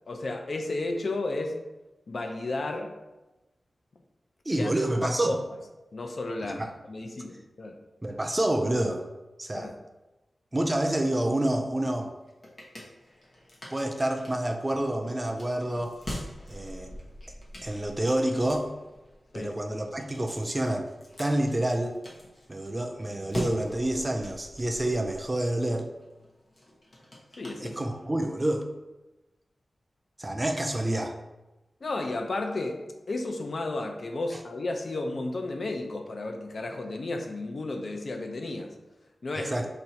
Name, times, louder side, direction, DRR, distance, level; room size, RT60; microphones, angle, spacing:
voice 1, 0.1-1.6 2.1-2.9 4.6-4.7 5.0-5.4 5.9-7.8 9.5-9.7 19.3-19.5 27.4-27.8 31.8-38.7 39.2-39.5, left 2 dB, 55° left, 4 dB, 0.5 m, -33 dB
voice 2, 4.5-5.3 6.4-6.7 8.0-9.0 9.4-9.7 10.5-12.1 13.7-16.0 16.5-16.9 17.6-18.7 19.3-20.9 21.2-21.9 22.5-25.9 27.6-28.7 30.2-31.2 39.4-39.7, right 1 dB, 20° right, 4 dB, 0.4 m, -28 dB
sound 1, 12.0-28.3, left 1 dB, 40° left, 1.0 m, -44 dB
4.1 x 2.7 x 4.3 m, 1.0 s
wide cardioid pair, 115°, 0 cm